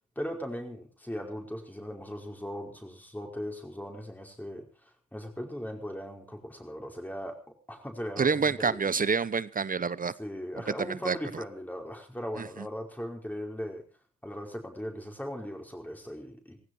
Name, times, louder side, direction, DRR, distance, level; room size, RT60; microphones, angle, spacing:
voice 1, 0.2-7.3 7.7-8.8 10.2-13.8 14.2-16.6, equal, 5° left, 2 dB, 5.2 m, -38 dB
voice 2, 8.2-10.1 10.8-11.4 12.4-12.5, right 5 dB, 30° right, 18 dB, 0.9 m, -28 dB
17.0 x 16.5 x 4.7 m, 0.36 s
cardioid pair, 90°, 30 cm